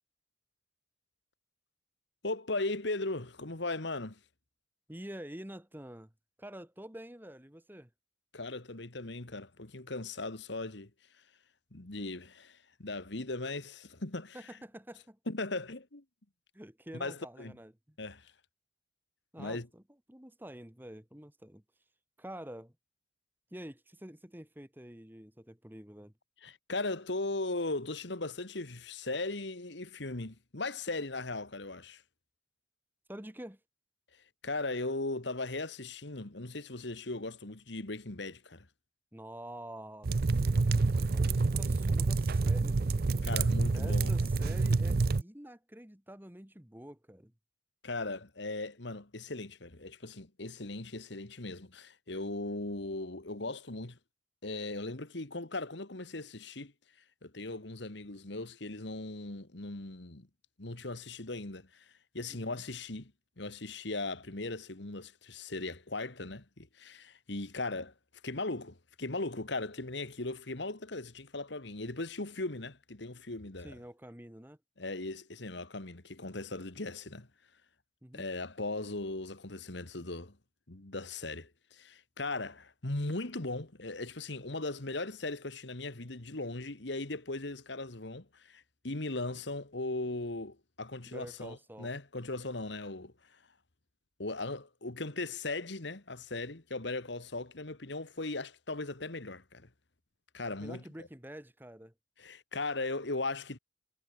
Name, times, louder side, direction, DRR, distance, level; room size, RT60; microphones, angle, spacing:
voice 1, 2.2-4.2 8.3-10.9 11.7-14.4 15.3-16.0 17.0-17.5 18.0-18.3 19.4-19.7 26.4-32.0 34.4-38.7 43.2-44.1 47.8-54.0 54.4-56.7 57.2-60.3 60.6-67.9 68.2-73.7 74.8-77.3 78.1-80.4 80.7-93.1 94.2-99.7 100.3-101.1 102.2-103.6, left 2 dB, 65° left, 1.8 m, -38 dB
voice 2, 4.9-6.1 6.4-7.9 14.3-15.2 16.5-18.0 19.3-19.8 20.1-21.6 22.2-22.7 23.5-26.1 33.1-33.6 39.1-40.1 40.5-43.1 43.7-47.3 62.3-62.6 73.6-74.6 78.0-78.3 91.1-91.9 100.6-101.9, right 1 dB, 10° right, 1.6 m, -48 dB
sound 1, 40.0-45.2, right 3 dB, 50° right, 0.5 m, -28 dB
head